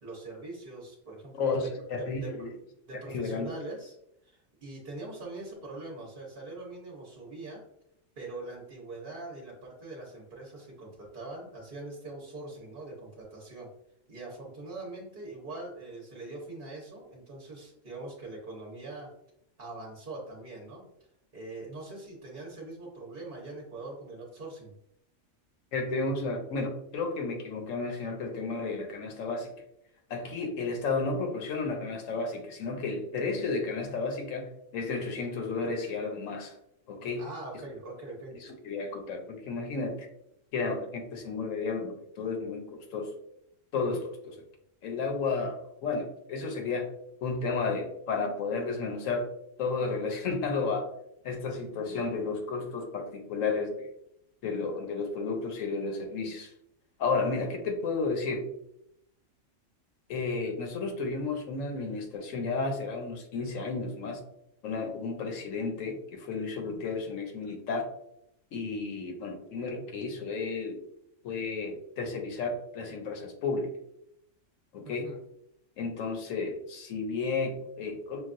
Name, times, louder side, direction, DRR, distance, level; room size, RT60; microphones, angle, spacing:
voice 1, 0.0-1.7 2.0-2.6 2.9-4.0 4.2-7.6 8.2-13.7 14.1-19.1 19.6-20.9 21.3-24.8 37.2-38.3 74.8-75.2, right 2 dB, 45° right, -2 dB, 0.9 m, -42 dB
voice 2, 1.4-2.5 3.1-3.5 25.7-29.5 30.1-36.5 36.9-37.2 38.4-40.1 40.5-43.1 43.7-44.4 44.8-46.9 47.2-49.3 49.6-50.9 51.2-53.9 54.4-56.5 57.0-58.4 60.1-64.2 64.6-67.8 68.5-70.8 71.2-73.7 74.7-75.1 75.8-78.2, left 4 dB, 80° left, 4 dB, 1.1 m, -32 dB
5.8 x 2.3 x 2.5 m, 0.78 s
omnidirectional pair, 1.4 m